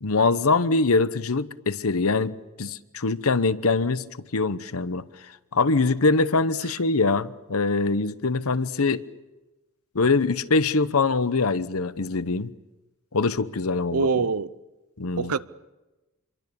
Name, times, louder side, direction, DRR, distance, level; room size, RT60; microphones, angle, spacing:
voice 1, 0.0-4.1 4.3-5.0 5.5-9.1 9.9-12.5 13.1-14.1 15.0-15.3, left 3 dB, 70° left, 0.9 m, -23 dB
voice 2, 13.9-14.5 15.2-15.4, right 4 dB, 80° right, 0.7 m, -24 dB
27.5 x 23.0 x 7.0 m
head